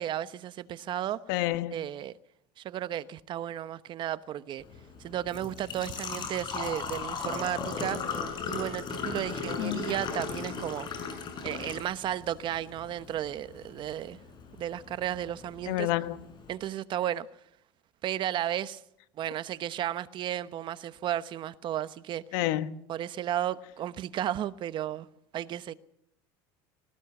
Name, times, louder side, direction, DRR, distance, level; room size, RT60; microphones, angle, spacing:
voice 1, 0.0-1.2 1.7-2.1 2.6-4.6 5.0-8.0 8.5-10.9 11.4-14.2 14.5-15.9 16.5-17.3 18.0-18.8 19.2-22.4 22.9-25.1 25.3-25.7, right 11 dB, 45° right, 1.0 m, -33 dB
voice 2, 1.3-1.8 9.6-9.8 15.7-16.2 22.3-22.7, left 15 dB, 75° left, 1.3 m, -29 dB
Engine / Trickle dribble / Fill (with liquid), 4.6-16.6, left 5 dB, 40° left, 6.4 m, -38 dB
20.0 x 18.5 x 7.2 m
supercardioid pair, 115°, 11 cm